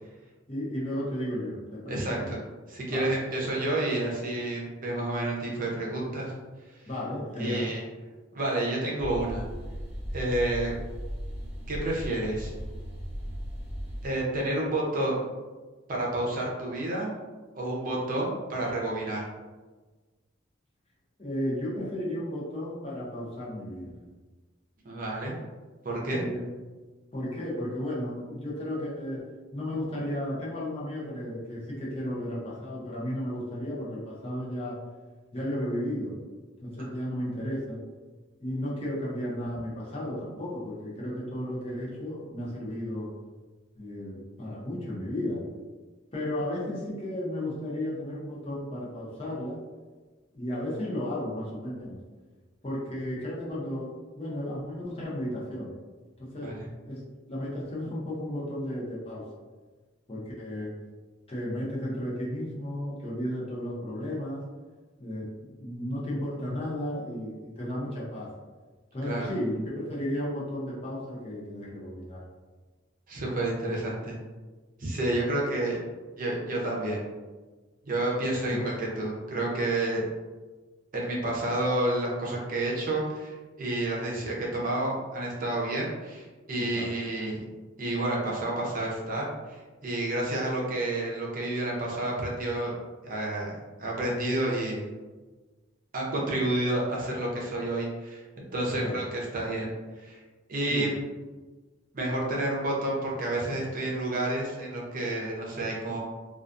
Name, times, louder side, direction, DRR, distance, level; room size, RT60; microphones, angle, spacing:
voice 1, 0.5-2.3 2.9-3.2 6.9-7.7 21.2-23.9 26.1-26.5 27.1-29.2 29.5-34.8 35.3-36.2 36.6-37.9 38.4-43.1 43.8-45.4 46.1-49.6 50.3-52.0 52.6-55.7 56.2-56.6 56.8-57.0 57.3-59.3 60.1-60.7 61.3-64.4 65.0-68.3 68.9-72.2 78.5-78.6 86.6-86.9 98.8-99.0 100.7-100.9, left 1 dB, 30° left, -6 dB, 0.7 m, -34 dB
voice 2, 1.9-2.4 2.7-6.3 7.4-7.8 8.3-9.4 10.1-10.7 11.7-12.5 14.0-15.2 15.9-17.1 17.5-19.3 24.8-25.3 25.8-26.2 56.4-56.6 69.0-69.4 73.1-74.2 74.8-75.8 76.2-77.0 77.8-80.0 80.9-87.4 87.8-92.7 93.0-93.5 93.8-94.9 95.9-99.7 100.0-100.2 100.5-100.9 101.9-106.0, right 1 dB, 45° right, -4 dB, 0.6 m, -30 dB
sound 1, 9.0-14.1, equal, 10° right, 1.0 m, -37 dB
2.4 x 2.3 x 2.5 m, 1.3 s
head